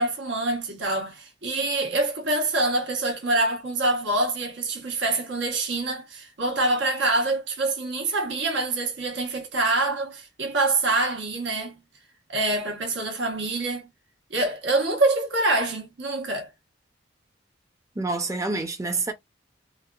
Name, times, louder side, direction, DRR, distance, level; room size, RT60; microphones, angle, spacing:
voice 1, 0.0-11.8 12.3-13.9 14.3-16.5, right 2 dB, 90° right, 1.1 m, -25 dB
voice 2, 18.0-19.1, right 3 dB, 15° right, 0.5 m, -27 dB
3.1 x 2.4 x 2.3 m
head